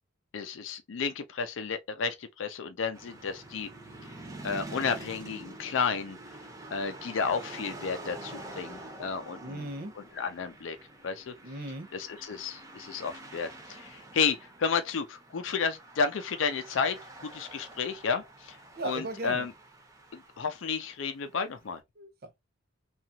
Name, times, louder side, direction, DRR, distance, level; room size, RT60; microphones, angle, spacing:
voice 1, 0.3-3.7 4.4-6.2 6.7-9.7 10.2-10.8 11.0-11.3 11.9-18.6 18.8-19.5 20.1-21.8, left 5 dB, 70° left, 0.4 m, -32 dB
sound 1, 2.9-21.4, right 2 dB, 15° right, 0.6 m, -47 dB
voice 2, 9.4-9.9 11.4-11.9 18.8-19.5 22.0-22.4, right 2 dB, 50° right, 0.7 m, -37 dB
2.9 x 2.3 x 2.6 m
head